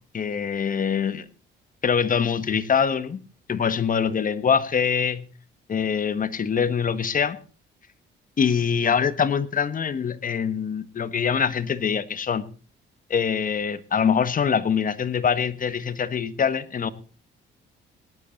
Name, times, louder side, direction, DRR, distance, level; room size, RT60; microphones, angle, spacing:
voice 1, 0.1-1.2 1.8-3.2 3.5-5.3 5.7-7.4 8.4-12.4 13.1-16.9, left 7 dB, 45° left, 14 dB, 1.4 m, -24 dB
18.5 x 11.5 x 4.1 m, 0.37 s
cardioid pair, 90°, 20 cm